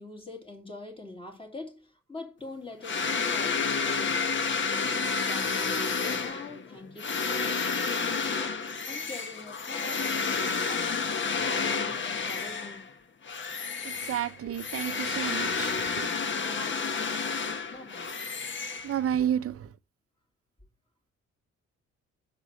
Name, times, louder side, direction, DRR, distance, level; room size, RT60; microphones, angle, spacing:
voice 1, 0.0-10.1 10.7-12.9 16.1-17.4 17.7-18.1, left 2 dB, 20° left, 2.9 m, -44 dB
sound 1, 2.8-12.9 13.2-19.3, left 5 dB, 40° left, 1.1 m, -30 dB
voice 2, 13.8-15.7 16.0-16.1 18.8-19.7, right 10 dB, 50° right, 0.6 m, -30 dB
6.7 x 4.8 x 6.2 m
cardioid pair, 90°, 30 cm